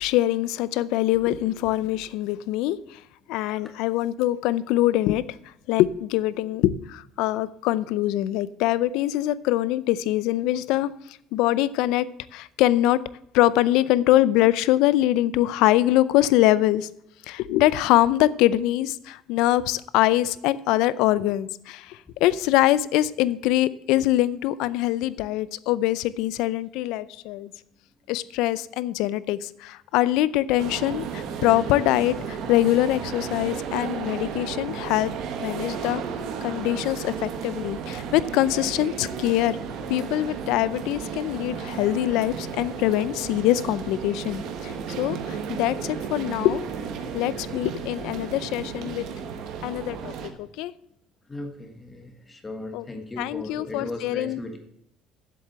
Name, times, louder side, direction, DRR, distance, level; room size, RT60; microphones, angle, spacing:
voice 1, 0.0-3.0 3.3-10.9 11.3-12.1 12.3-13.0 13.3-16.9 17.3-27.5 28.1-35.1 35.4-36.0 36.4-39.6 39.9-46.6 47.1-49.0 49.6-50.1 50.4-50.7 52.7-52.8 53.2-54.4, left 15 dB, 75° left, 18 dB, 0.5 m, -23 dB
sound 1, 30.6-50.3, right 6 dB, 60° right, 1.3 m, -33 dB
voice 2, 51.3-54.6, left 2 dB, 15° left, 4 dB, 1.4 m, -37 dB
7.6 x 7.5 x 8.0 m, 0.77 s
cardioid pair, 155°, 0 cm